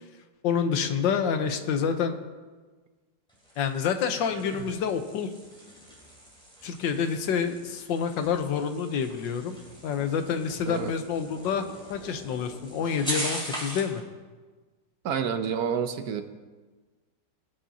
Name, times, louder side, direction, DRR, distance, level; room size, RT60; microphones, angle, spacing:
voice 1, 0.4-2.2 3.6-5.3 6.6-9.6 9.8-11.6 11.9-14.0, left 7 dB, 90° left, 7 dB, 1.5 m, -28 dB
sound 1, 3.3-14.0, equal, 5° left, 3.0 m, -40 dB
voice 2, 15.0-16.2, right 7 dB, 65° right, 8 dB, 1.1 m, -29 dB
20.0 x 8.8 x 2.8 m, 1.4 s
omnidirectional pair, 1.9 m